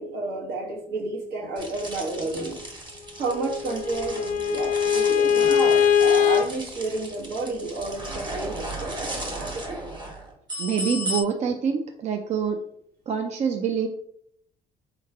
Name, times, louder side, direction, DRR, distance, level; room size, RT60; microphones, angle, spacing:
voice 1, 0.0-2.6 3.2-9.9, right 3 dB, 65° right, 0 dB, 1.4 m, -31 dB
sound 1, 1.6-11.2, right 1 dB, 25° right, 1.4 m, -35 dB
Bowed string instrument, 3.3-6.5, left 8 dB, 50° left, 0.4 m, -21 dB
voice 2, 10.6-12.6 13.1-13.9, right 6 dB, 45° right, 5 dB, 0.4 m, -26 dB
4.6 x 3.1 x 3.5 m, 0.68 s
cardioid pair, 110°, 17 cm